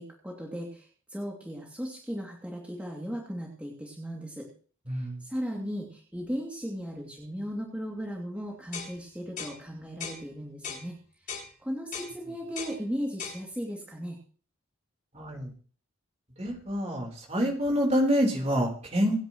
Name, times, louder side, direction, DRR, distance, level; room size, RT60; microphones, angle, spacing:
voice 1, 0.0-4.5 4.9-11.0 11.6-14.2, equal, 5° right, -3 dB, 2.7 m, -36 dB
voice 2, 4.9-5.2 15.1-15.5 16.4-19.2, equal, 30° right, 0 dB, 4.0 m, -27 dB
sound 1, 8.7-8.9 9.4-9.6 10.0-10.2 10.6-10.9 11.3-11.5 11.9-12.1 12.5-12.8 13.2-13.4, left 6 dB, 40° left, 7.0 m, -37 dB
27.5 x 10.5 x 3.1 m, 0.42 s
head